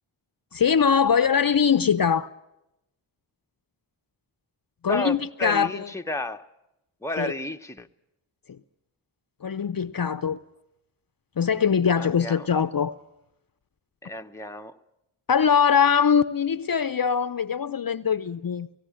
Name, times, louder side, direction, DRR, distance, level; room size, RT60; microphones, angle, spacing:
voice 1, 0.5-2.3 4.8-5.9 7.2-7.3 9.4-10.4 11.4-12.9 15.3-18.7, left 7 dB, 45° left, 0.7 m, -22 dB
voice 2, 4.9-6.5 7.0-7.9 12.0-12.5 14.0-14.8, left 1 dB, 5° left, 0.9 m, -32 dB
18.0 x 17.5 x 10.0 m
cardioid pair, 40°, 47 cm